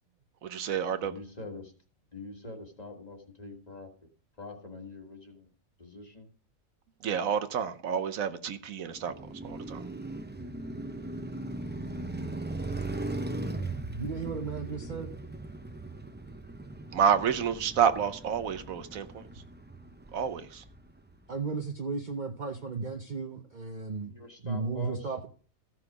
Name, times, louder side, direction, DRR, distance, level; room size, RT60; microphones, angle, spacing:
voice 1, 0.4-1.2 7.0-9.1 9.4-9.8 16.9-19.2 20.1-20.6, right 8 dB, 80° right, 1.2 m, -29 dB
voice 2, 1.0-1.6 2.1-3.9 4.4-5.5 5.8-6.2 24.0-25.0, left 2 dB, 30° left, 1.7 m, -44 dB
Car passing by, 8.9-21.1, right 2 dB, 15° right, 0.3 m, -39 dB
voice 3, 13.9-15.1 21.3-24.1 24.4-25.3, right 4 dB, 40° right, 0.8 m, -35 dB
15.0 x 5.9 x 4.8 m
omnidirectional pair, 1.4 m